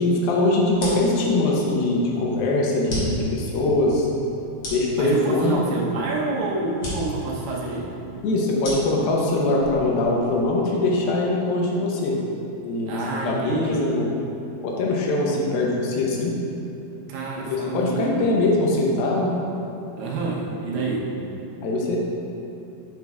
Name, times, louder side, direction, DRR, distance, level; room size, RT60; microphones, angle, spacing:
voice 1, 0.0-4.1 4.7-5.6 8.2-12.2 12.6-14.1 14.6-16.4 17.5-19.4 21.6-22.0, left 2 dB, 75° left, -2 dB, 2.4 m, -22 dB
sound 1, 0.7-10.6, equal, 55° left, 2.3 m, -36 dB
voice 2, 5.0-7.9 12.9-13.9 17.1-18.2 20.0-21.2, right 3 dB, 85° right, -4 dB, 3.0 m, -27 dB
7.9 x 6.5 x 2.4 m, 2.9 s
omnidirectional pair, 4.5 m